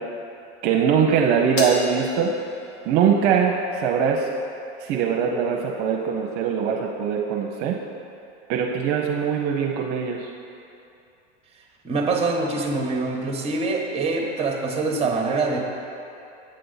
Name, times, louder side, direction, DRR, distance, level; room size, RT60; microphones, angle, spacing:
voice 1, 0.6-2.3 2.8-4.3 4.8-7.8 8.5-10.3, right 7 dB, 50° right, 0 dB, 0.7 m, -22 dB
Crash cymbal, 1.6-4.1, left 3 dB, 40° left, 1.1 m, -34 dB
voice 2, 11.8-15.6, right 3 dB, 15° right, 1 dB, 1.1 m, -24 dB
8.7 x 6.6 x 4.0 m, 2.6 s
hypercardioid pair, 110°, 35 cm